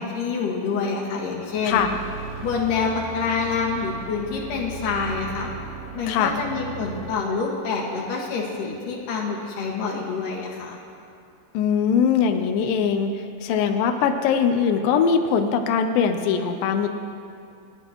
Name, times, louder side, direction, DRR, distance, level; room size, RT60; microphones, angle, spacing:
voice 1, 0.0-1.8 2.4-5.5 5.9-10.8, left 5 dB, 60° left, -2 dB, 2.9 m, -27 dB
sound 1, 1.7-7.1, right 5 dB, 70° right, 5.1 m, -37 dB
voice 2, 11.5-13.1 13.4-16.9, left 7 dB, 90° left, 6 dB, 2.0 m, -21 dB
29.5 x 11.0 x 3.0 m, 2.5 s
omnidirectional pair, 4.9 m